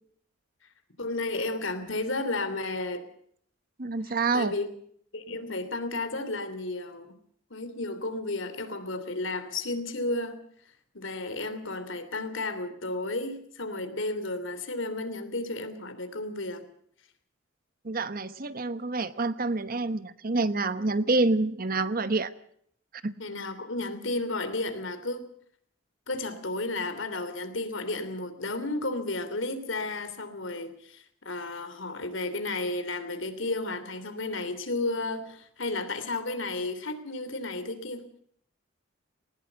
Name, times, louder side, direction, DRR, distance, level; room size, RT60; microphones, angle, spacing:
voice 1, 1.0-3.0 4.3-4.7 5.1-7.1 7.5-10.4 10.9-16.6 23.2-25.3 26.1-38.0, left 2 dB, 70° left, 10 dB, 3.1 m, -33 dB
voice 2, 3.8-4.5 17.8-22.3 23.0-23.1, right 3 dB, 45° right, 14 dB, 1.0 m, -27 dB
19.5 x 19.5 x 7.0 m, 0.65 s
head